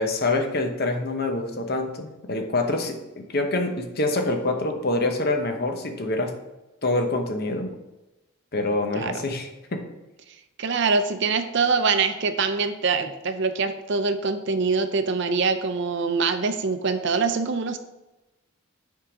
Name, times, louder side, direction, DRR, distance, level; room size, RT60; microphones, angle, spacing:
voice 1, 0.0-6.3 6.8-7.7 8.5-9.9, left 2 dB, 45° left, 4 dB, 0.8 m, -26 dB
voice 2, 10.6-17.8, right 4 dB, 55° right, 9 dB, 0.5 m, -24 dB
7.2 x 3.7 x 5.0 m, 1.0 s
head